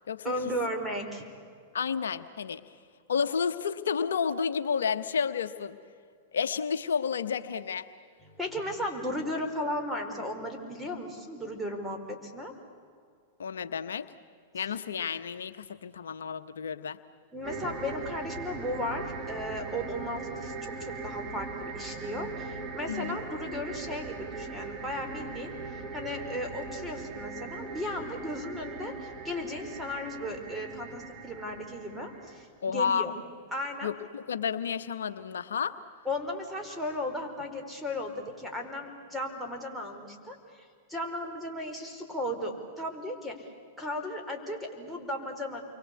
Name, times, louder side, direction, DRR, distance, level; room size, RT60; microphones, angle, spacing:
voice 1, 0.2-1.2 8.2-12.5 14.5-14.7 17.3-25.5 25.9-33.1 33.5-33.9 36.0-43.5 43.8-45.6, left 1 dB, 5° right, 2 dB, 4.9 m, -35 dB
voice 2, 1.7-2.6 3.1-5.8 6.3-7.9 13.4-14.1 14.5-17.0 22.9-23.2 32.6-33.1 33.8-35.8, left 6 dB, 75° left, 10 dB, 1.0 m, -31 dB
sound 1, 17.4-32.4, right 4 dB, 30° right, 3.6 m, -40 dB
29.0 x 24.0 x 8.5 m, 2.2 s
hypercardioid pair, 105°, 0 cm